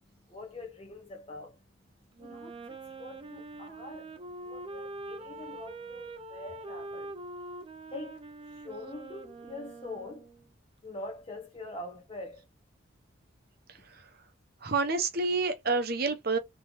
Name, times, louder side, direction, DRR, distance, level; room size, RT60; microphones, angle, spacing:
voice 1, 0.3-1.6 2.2-7.1 7.9-10.3 10.8-12.4, left 2 dB, 25° left, 0.7 m, -44 dB
Wind instrument woodwind instrument, 2.1-10.5, right 2 dB, 25° right, 0.5 m, -44 dB
voice 2, 14.6-16.4, right 3 dB, 50° right, 0.9 m, -28 dB
3.7 x 3.4 x 3.1 m
head